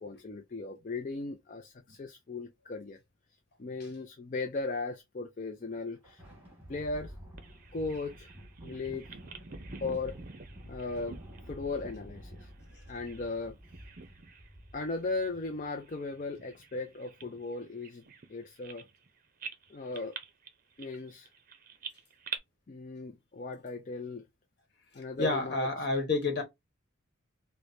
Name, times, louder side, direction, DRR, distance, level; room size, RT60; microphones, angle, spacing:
voice 1, 0.0-3.0 3.6-6.2 6.7-7.1 7.7-8.3 8.6-9.2 9.8-10.2 10.7-11.2 11.5-12.5 12.9-13.6 14.7-18.0 18.3-18.9 19.7-20.1 20.8-21.3 22.7-24.2 24.9-25.7, left 3 dB, 40° left, 0.4 m, -37 dB
Thunder, 5.6-16.4, equal, 10° right, 1.5 m, -50 dB
Bird vocalization bird call bird song, 7.4-13.3 13.6-14.5 14.8-15.0 15.6-19.1 19.4-22.4, right 5 dB, 40° right, 0.6 m, -47 dB
voice 2, 25.2-26.4, left 3 dB, 55° left, 1.3 m, -29 dB
4.8 x 2.1 x 2.6 m
head